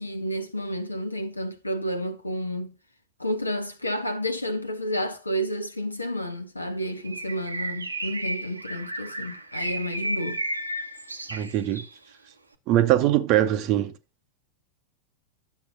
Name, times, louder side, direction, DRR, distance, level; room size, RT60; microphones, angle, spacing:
voice 1, 0.0-2.7 3.2-10.4, equal, 85° left, 1.2 m, -30 dB
Bird, 7.0-12.0, right 1 dB, 80° right, 0.9 m, -33 dB
voice 2, 11.3-11.8 12.7-13.9, right 13 dB, 40° right, 0.7 m, -22 dB
11.0 x 7.4 x 2.6 m
figure-of-eight pair, 90°, 0 cm